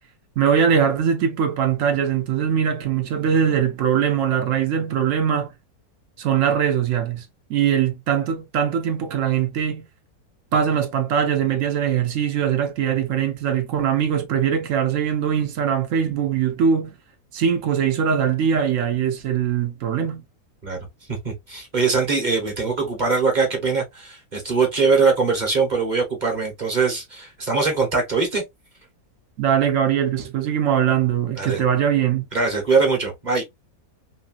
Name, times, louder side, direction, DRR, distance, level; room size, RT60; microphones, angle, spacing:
voice 1, 0.4-5.5 6.2-9.9 10.5-17.0 17.3-20.2 29.4-32.2, right 8 dB, 65° right, 0.8 m, -21 dB
voice 2, 21.1-28.4 31.4-31.6 32.3-33.4, right 4 dB, 35° right, 1.0 m, -22 dB
3.2 x 2.6 x 2.4 m
omnidirectional pair, 1.7 m